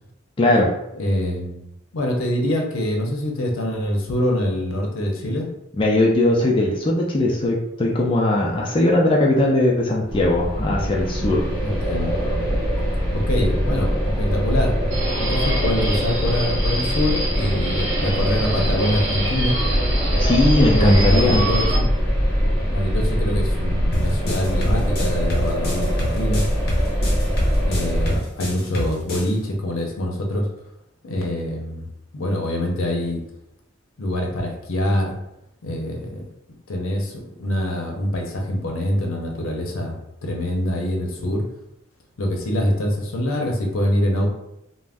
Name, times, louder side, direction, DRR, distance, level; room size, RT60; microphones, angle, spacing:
voice 1, 0.4-0.7 5.8-11.4 20.2-21.5, left 1 dB, 25° left, -2 dB, 0.3 m, -19 dB
voice 2, 0.9-5.5 11.6-12.2 13.1-14.7 15.2-19.6 20.7-21.9 22.7-26.5 27.6-30.5 31.0-31.9 32.1-33.2 34.0-35.1 35.6-36.2 36.7-41.4 42.2-44.3, left 1 dB, 85° left, 1 dB, 0.6 m, -24 dB
sound 1, 10.1-28.2, equal, 5° left, 0.7 m, -22 dB
Subway metro underground, 14.9-21.8, right 1 dB, 60° right, 0.8 m, -27 dB
sound 2, 23.9-29.3, left 1 dB, 50° left, 0.8 m, -27 dB
2.4 x 2.0 x 3.4 m, 0.83 s
head